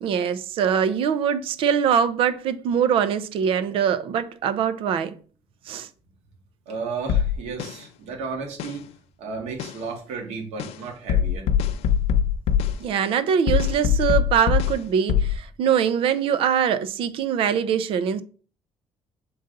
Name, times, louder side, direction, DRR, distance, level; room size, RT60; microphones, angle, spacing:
voice 1, 0.0-5.2 5.7-5.9 12.8-18.2, right 8 dB, 55° right, 0.6 m, -23 dB
voice 2, 6.7-8.8 9.2-11.5, right 4 dB, 85° right, 1.9 m, -33 dB
sound 1, 7.1-7.7 8.6-8.7 9.6-9.7 10.6-10.7 11.1-12.8 13.5-14.8 15.1-15.4, left 8 dB, 70° left, 0.5 m, -22 dB
6.8 x 3.9 x 3.9 m
cardioid pair, 180°, 11 cm